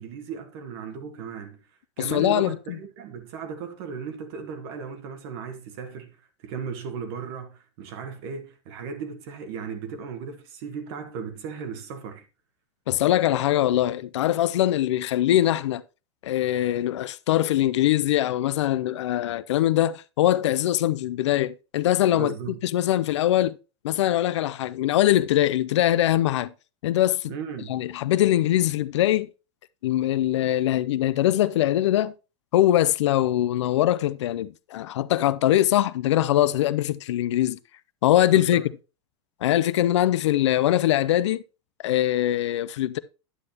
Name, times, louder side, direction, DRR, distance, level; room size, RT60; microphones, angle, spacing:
voice 1, 0.0-1.6 2.0-12.2 22.1-22.6 27.3-27.8 38.3-38.7, right 6 dB, 60° right, 1.4 m, -36 dB
voice 2, 2.0-2.6 12.9-15.8 16.2-22.3 22.6-23.6 23.8-26.5 26.8-27.3 27.7-29.3 29.8-32.1 32.5-37.6 38.0-38.7 39.4-41.4 41.8-43.0, left 13 dB, 90° left, 0.4 m, -22 dB
9.6 x 7.7 x 2.8 m
supercardioid pair, 130°, 14 cm